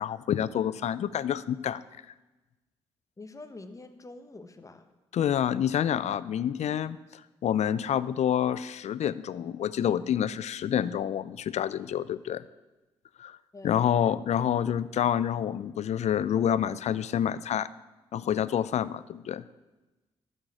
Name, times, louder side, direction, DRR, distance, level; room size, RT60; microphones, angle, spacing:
voice 1, 0.0-1.8 5.1-7.0 7.4-12.4 13.2-13.4 13.6-17.7 18.1-19.5, left 9 dB, 60° left, 18 dB, 0.5 m, -28 dB
voice 2, 3.2-4.9 13.5-13.8, left 2 dB, 25° left, 8 dB, 1.3 m, -46 dB
12.5 x 6.4 x 8.9 m, 1.1 s
hypercardioid pair, 45°, 13 cm